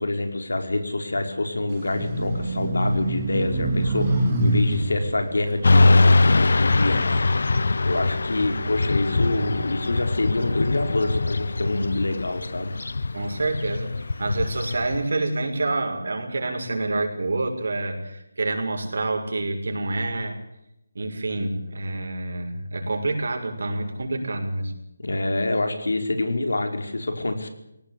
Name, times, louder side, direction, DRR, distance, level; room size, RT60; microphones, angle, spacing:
voice 1, 0.0-7.5 7.8-12.7 25.0-27.5, left 2 dB, 90° left, 6 dB, 5.0 m, -26 dB
sound 1, 1.7-7.3 7.8-9.6, right 1 dB, 20° right, 4.2 m, -26 dB
Motorcycle / Traffic noise roadway noise, 5.6-15.0, left 3 dB, 70° left, 0.9 m, -22 dB
voice 2, 13.1-20.4 20.9-24.7, right 2 dB, 60° right, 3 dB, 6.3 m, -27 dB
20.5 x 18.5 x 8.6 m, 0.84 s
figure-of-eight pair, 170°, 0 cm